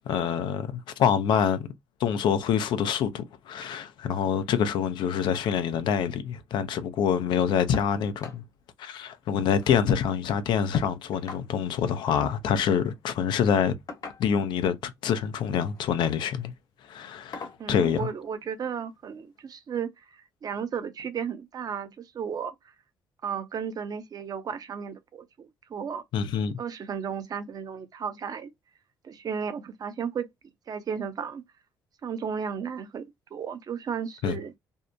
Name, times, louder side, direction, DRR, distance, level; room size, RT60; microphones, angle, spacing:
voice 1, 0.1-1.7 2.0-8.4 8.8-13.7 14.2-16.5 16.9-18.1 26.1-26.5 34.2-34.4, left 8 dB, 70° left, 0.5 m, -26 dB
sound 1, 7.7-7.9 8.2-8.4 8.8-8.9 9.2-9.9 10.7-11.5 12.7-12.9 13.9-14.5 15.6-15.9 16.4-16.5 17.3-17.6 18.9-19.0 19.5-19.6, left 4 dB, 45° left, 1.1 m, -42 dB
voice 2, 17.6-22.5 23.2-26.0 26.6-28.5 29.0-30.3 30.7-31.4 32.0-33.1 33.3-34.5, right 7 dB, 50° right, 0.7 m, -34 dB
2.7 x 2.1 x 2.5 m
hypercardioid pair, 55°, 8 cm